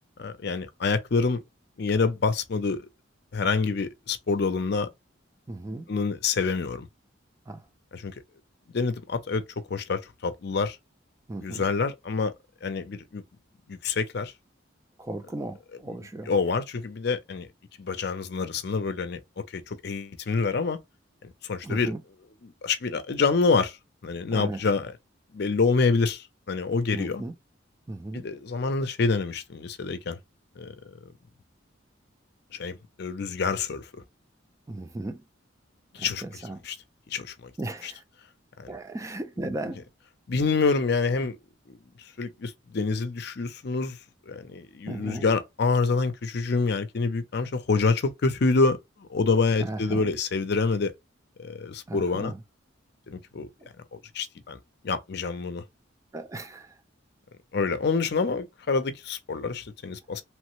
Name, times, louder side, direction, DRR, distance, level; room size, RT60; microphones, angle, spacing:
voice 1, 0.2-1.4 1.8-2.9 3.3-4.9 5.9-6.9 7.9-8.1 8.7-9.4 9.7-10.8 11.4-12.3 12.6-13.2 13.7-14.3 16.3-17.5 17.8-19.2 19.5-20.8 21.2-21.9 22.4-23.8 24.0-24.9 25.3-27.2 28.2-30.2 30.6-30.7 32.6-33.8 35.9-36.2 36.7-36.8 37.1-37.5 38.6-38.7 40.3-41.4 41.7-41.8 42.2-44.0 44.3-50.9 51.4-52.3 53.1-53.5 53.9-54.6 54.8-55.6 57.5-60.2, left 4 dB, 55° left, 0.5 m, -27 dB
voice 2, 5.5-5.9 7.5-7.6 11.3-11.7 15.0-16.3 21.6-22.0 24.3-24.6 26.9-27.3 27.9-28.3 34.7-35.2 36.0-36.6 37.6-38.0 38.7-39.8 44.9-45.2 49.6-50.1 51.9-52.4 53.6-53.7 56.1-56.8, right 1 dB, 15° right, 0.3 m, -36 dB
3.1 x 2.1 x 3.0 m
head